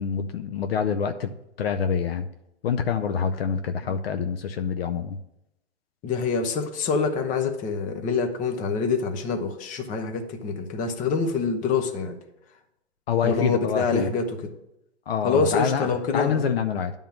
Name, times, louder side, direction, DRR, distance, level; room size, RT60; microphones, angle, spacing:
voice 1, 0.0-1.3 1.6-2.3 2.6-5.2 13.1-14.1 15.1-16.9, left 7 dB, 60° left, 8 dB, 0.7 m, -26 dB
voice 2, 6.0-12.2 13.2-14.5 15.2-16.5, left 4 dB, 25° left, 6 dB, 1.0 m, -26 dB
10.0 x 3.7 x 7.2 m, 0.85 s
hypercardioid pair, 120°, 33 cm